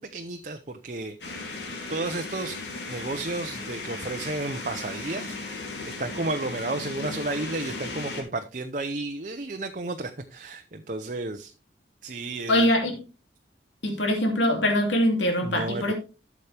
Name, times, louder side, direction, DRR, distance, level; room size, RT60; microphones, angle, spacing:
voice 1, 0.0-1.6 1.9-2.6 2.9-11.5 12.0-12.7 15.4-15.9, right 2 dB, 45° right, 6 dB, 0.7 m, -33 dB
sound 1, 1.2-8.2, left 3 dB, 70° left, 3.4 m, -36 dB
voice 2, 12.5-13.0 13.8-15.9, left 1 dB, 90° left, 2 dB, 2.9 m, -23 dB
12.5 x 7.2 x 3.4 m, 0.31 s
head